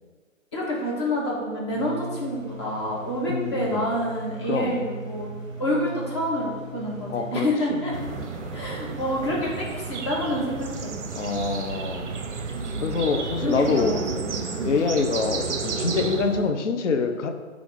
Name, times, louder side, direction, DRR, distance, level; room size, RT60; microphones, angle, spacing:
voice 1, 0.5-5.3 5.6-8.0 8.5-10.9 12.5-13.0 13.4-14.0 14.6-14.7, equal, 20° left, -5 dB, 0.7 m, -28 dB
sound 1, 1.7-10.0, right 1 dB, 10° right, 0.8 m, -39 dB
voice 2, 3.3-3.9 4.5-4.8 7.1-7.8 11.1-12.1 12.8-13.9 14.6-17.3, left 4 dB, 60° left, 7 dB, 0.5 m, -25 dB
sound 2, 7.9-16.5, right 4 dB, 60° right, 0.5 m, -32 dB
4.9 x 2.4 x 3.6 m, 1.5 s
figure-of-eight pair, 140°, 41 cm